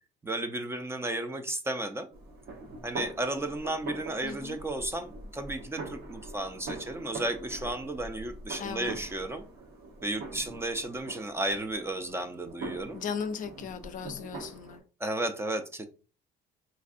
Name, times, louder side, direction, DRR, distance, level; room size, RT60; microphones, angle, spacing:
voice 1, 0.2-2.1 2.8-9.4 10.0-13.0 15.0-15.9, right 1 dB, 15° right, 0.4 m, -33 dB
sound 1, 2.1-14.8, right 2 dB, 70° right, 1.1 m, -43 dB
voice 2, 4.2-4.6 8.6-9.0 12.9-14.8, left 6 dB, 50° left, 0.4 m, -37 dB
4.1 x 2.6 x 2.5 m
cardioid pair, 110°, 17 cm